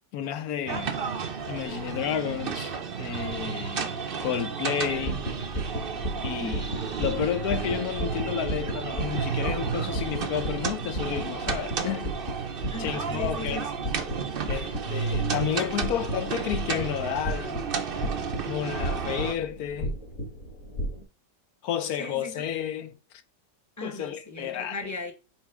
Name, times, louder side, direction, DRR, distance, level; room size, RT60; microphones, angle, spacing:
voice 1, 0.1-1.0 1.5-3.8 4.2-5.2 6.2-6.7 7.0-12.1 12.8-13.7 14.5-17.6 18.5-19.9 21.6-22.9 23.8-24.8, left 10 dB, 65° left, 1.1 m, -31 dB
sound 1, 0.7-19.3, right 6 dB, 50° right, 0.7 m, -32 dB
voice 2, 3.8-4.2 6.4-6.8 12.7-13.6 18.6-19.2 22.0-22.5 23.8-25.1, left 1 dB, 10° left, 0.9 m, -39 dB
sound 2, 4.9-21.0, equal, 45° left, 2.0 m, -34 dB
7.1 x 3.2 x 4.9 m
omnidirectional pair, 1.9 m